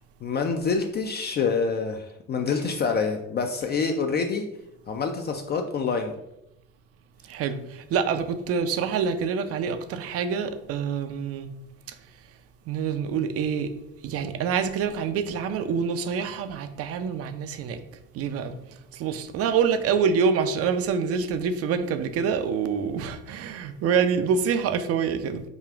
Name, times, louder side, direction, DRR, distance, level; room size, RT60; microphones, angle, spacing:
voice 1, 0.2-4.5 4.9-6.1, left 5 dB, 35° left, 0.4 m, -26 dB
voice 2, 7.3-11.5 12.7-13.7 14.0-17.8 18.1-18.5 18.9-25.4, right 6 dB, 50° right, 0.4 m, -26 dB
5.0 x 2.4 x 2.3 m
supercardioid pair, 70°, 30 cm